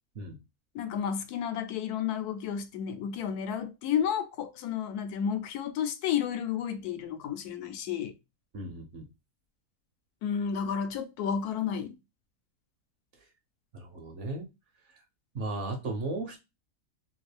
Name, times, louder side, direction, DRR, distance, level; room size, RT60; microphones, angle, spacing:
voice 1, 0.7-8.1 10.2-12.0, left 8 dB, 85° left, 1.1 m, -31 dB
voice 2, 8.5-9.0 13.7-14.5 15.3-16.4, right 2 dB, 60° right, 0.9 m, -35 dB
3.0 x 2.5 x 3.2 m
omnidirectional pair, 1.6 m